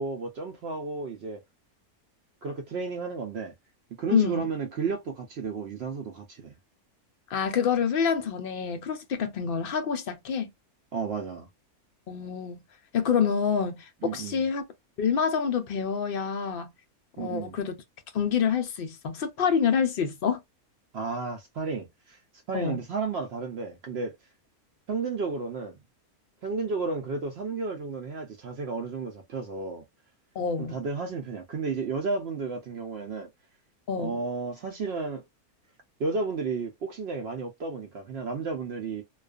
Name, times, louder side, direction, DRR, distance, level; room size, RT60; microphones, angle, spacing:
voice 1, 0.0-1.4 2.4-3.5 4.0-6.5 10.9-11.5 14.0-14.4 17.2-17.6 20.9-22.2 22.5-24.2 24.9-25.8 26.4-29.8 30.6-33.3 34.0-35.2 36.0-39.0, right 4 dB, 65° right, 0.6 m, -32 dB
voice 2, 4.1-4.4 7.3-10.5 12.1-12.6 12.9-14.6 15.0-16.7 17.2-17.8 18.1-20.4 22.5-22.8 30.4-30.8 33.9-34.2, left 7 dB, 65° left, 0.5 m, -27 dB
2.3 x 2.3 x 2.3 m
omnidirectional pair, 1.6 m